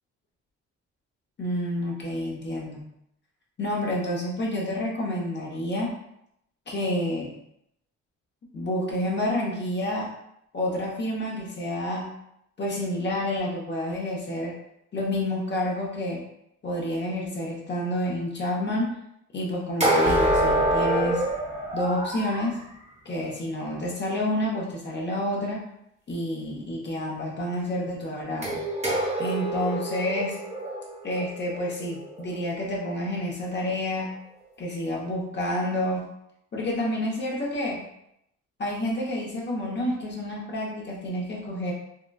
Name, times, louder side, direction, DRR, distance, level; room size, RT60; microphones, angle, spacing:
voice 1, 1.4-2.8 3.6-5.9 6.7-7.3 8.5-10.1 10.5-12.0 12.6-14.5 14.9-16.2 16.6-18.9 19.3-21.2 21.7-22.6 23.0-25.6 26.1-28.6 29.2-30.4 31.0-34.1 34.6-36.0 36.5-37.8 38.6-41.7, left 1 dB, 35° left, -3 dB, 0.8 m, -29 dB
sound 1, 19.8-22.5 28.4-32.4, right 1 dB, 20° right, 1.0 m, -26 dB
sound 2, 20.1-23.3 23.5-23.6, left 2 dB, 5° right, 0.5 m, -37 dB
3.7 x 2.2 x 2.2 m, 0.78 s
cardioid pair, 90°, 30 cm